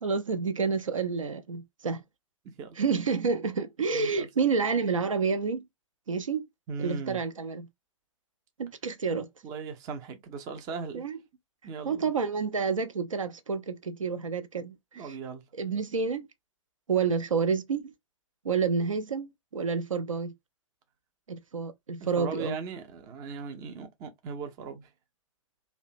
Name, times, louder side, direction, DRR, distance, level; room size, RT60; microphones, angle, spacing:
voice 1, 0.0-2.0 2.8-5.6 6.1-6.4 6.8-7.7 8.6-9.3 10.9-11.2 11.8-15.2 15.5-16.3 16.9-17.9 18.4-20.3 21.3-22.6, right 5 dB, 75° right, 0.5 m, -29 dB
voice 2, 3.9-4.3 6.7-7.2 9.4-11.0 11.6-12.1 15.0-15.4 22.0-24.9, right 5 dB, 20° right, 0.5 m, -38 dB
2.7 x 2.1 x 2.5 m
figure-of-eight pair, 115°, 17 cm